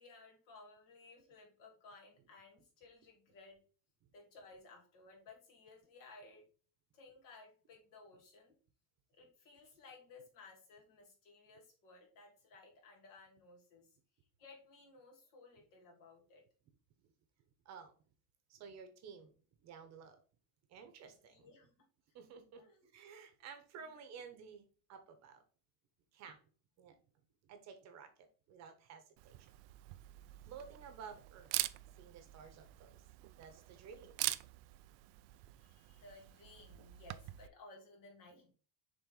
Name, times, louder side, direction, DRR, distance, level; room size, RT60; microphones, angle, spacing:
voice 1, 0.0-3.6 4.1-6.4 6.9-8.6 9.1-14.0 14.4-16.4 21.1-21.9 22.5-22.9 35.4-38.5, left 3 dB, 55° left, 0 dB, 2.8 m, -59 dB
voice 2, 18.5-19.3 19.6-20.2 20.7-21.5 22.1-25.4 26.1-26.4 26.8-27.0 27.4-29.5 30.5-31.6 32.0-33.0 33.4-34.2, right 6 dB, 40° right, 8 dB, 1.1 m, -53 dB
Camera, 29.2-37.5, right 18 dB, 65° right, 0.5 m, -44 dB
6.6 x 3.9 x 4.0 m, 0.39 s
cardioid pair, 165°, 40 cm